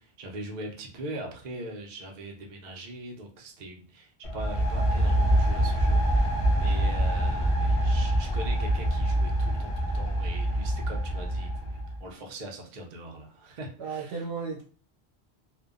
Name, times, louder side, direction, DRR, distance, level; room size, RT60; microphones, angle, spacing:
voice 1, 0.0-14.2, right 1 dB, 55° right, 0 dB, 0.6 m, -41 dB
sound 1, 4.2-12.0, right 1 dB, 60° left, 0.3 m, -25 dB
voice 2, 13.8-14.6, right 5 dB, 80° right, 0 dB, 1.0 m, -34 dB
2.5 x 2.2 x 2.3 m, 0.40 s
omnidirectional pair, 1.1 m